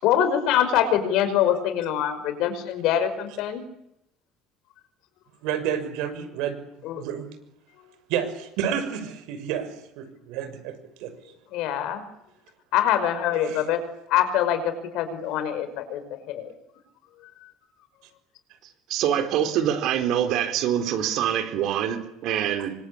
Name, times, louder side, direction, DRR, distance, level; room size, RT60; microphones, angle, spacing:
voice 1, 0.0-3.6 6.8-7.0 11.5-12.0 12.7-13.8 14.1-16.5, left 10 dB, 60° left, 10 dB, 5.5 m, -24 dB
voice 2, 5.4-6.6 6.9-7.3 8.1-9.7 10.0-10.7 11.0-11.1 13.4-13.6, right 9 dB, 70° right, 9 dB, 6.4 m, -29 dB
voice 3, 18.9-22.7, right 10 dB, 50° right, 7 dB, 4.1 m, -25 dB
27.5 x 25.0 x 8.7 m, 0.80 s
cardioid pair, 175°, 0 cm